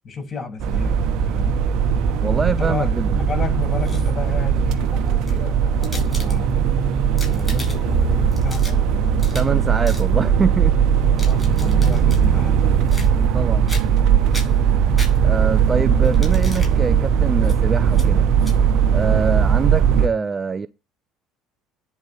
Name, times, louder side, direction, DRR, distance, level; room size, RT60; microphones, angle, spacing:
voice 1, 0.0-0.9 1.2-1.6 2.4-6.5 7.2-9.2 11.2-12.8 19.0-19.3, left 4 dB, 30° left, 7.7 m, -32 dB
sound 1, 0.6-20.1, right 7 dB, 55° right, 1.0 m, -18 dB
voice 2, 2.2-3.2 9.3-10.7 13.2-13.8 15.2-18.3 18.9-20.7, right 4 dB, 25° right, 0.6 m, -24 dB
sound 2, 3.6-4.3 5.1-6.7 7.0-8.0 8.3-9.6 9.8-10.1 10.9-12.2 12.9-13.4 13.7-14.0 14.3-15.5 16.0-16.7 17.4-17.6 17.9-18.1 18.4-18.6, left 2 dB, 10° left, 5.7 m, -37 dB
10.5 x 4.1 x 7.4 m
figure-of-eight pair, 60°, 0 cm